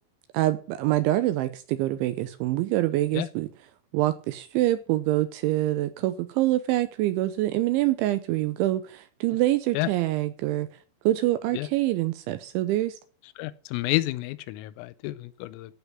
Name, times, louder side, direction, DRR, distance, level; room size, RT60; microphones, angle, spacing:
voice 1, 0.3-3.5 3.9-10.7 11.1-13.0, right 15 dB, 80° right, 2.8 m, -25 dB
voice 2, 13.4-15.8, left 19 dB, 85° left, 3.3 m, -30 dB
14.5 x 5.8 x 7.3 m
omnidirectional pair, 6.0 m